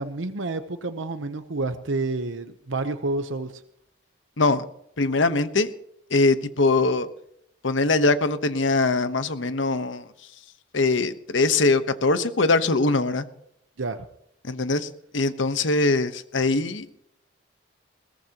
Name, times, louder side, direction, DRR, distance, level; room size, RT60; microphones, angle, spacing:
voice 1, 0.0-3.6 13.8-14.0, right 2 dB, 85° right, 9 dB, 0.9 m, -29 dB
voice 2, 5.0-5.7 6.1-7.1 7.6-10.0 10.7-13.2 14.4-14.9 15.1-16.9, left 3 dB, 80° left, 11 dB, 1.1 m, -22 dB
21.0 x 18.5 x 3.0 m, 0.73 s
head